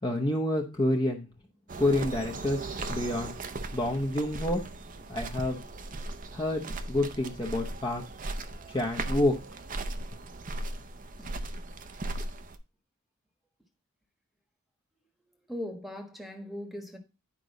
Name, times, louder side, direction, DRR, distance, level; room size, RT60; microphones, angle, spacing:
voice 1, 0.0-1.3 1.8-3.3 3.7-4.7 5.1-5.6 6.3-8.0 8.7-9.4, left 1 dB, 20° left, 0.8 m, -28 dB
sound 1, 1.7-12.6, right 2 dB, 40° right, 0.6 m, -37 dB
voice 2, 15.5-17.0, left 1 dB, ahead, 1.2 m, -39 dB
9.9 x 5.2 x 3.9 m
head